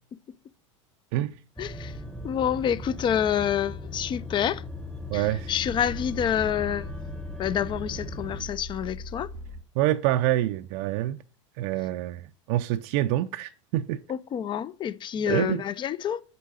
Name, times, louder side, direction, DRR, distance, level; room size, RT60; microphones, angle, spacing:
voice 1, 1.6-2.0 2.2-4.6 5.1-6.9 7.4-9.3 14.1-16.2, left 9 dB, 30° left, 0.5 m, -28 dB
sound 1, 1.6-8.4, left 2 dB, 5° left, 1.0 m, -39 dB
sound 2, 4.7-9.6, left 1 dB, 75° left, 3.2 m, -40 dB
voice 2, 5.1-5.5 9.8-11.2 11.6-12.2 12.5-14.0 15.3-15.6, right 14 dB, 60° right, 0.5 m, -26 dB
6.8 x 4.8 x 6.2 m
hypercardioid pair, 95°, 16 cm